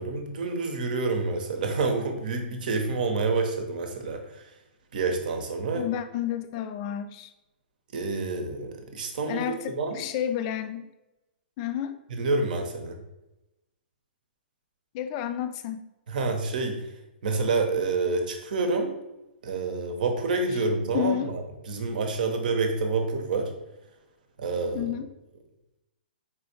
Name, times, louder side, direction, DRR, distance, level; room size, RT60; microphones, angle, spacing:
voice 1, 0.0-4.4 4.9-5.8 7.9-10.0 12.1-13.0 16.1-16.9 17.2-19.0 19.4-23.5 24.4-24.9, right 3 dB, 55° right, 5 dB, 0.8 m, -28 dB
voice 2, 5.7-7.3 9.3-10.9 11.6-12.0 14.9-15.8 20.9-21.4 24.7-25.1, left 10 dB, 35° left, 9 dB, 0.4 m, -30 dB
4.5 x 3.4 x 2.8 m, 0.96 s
figure-of-eight pair, 120°, 5 cm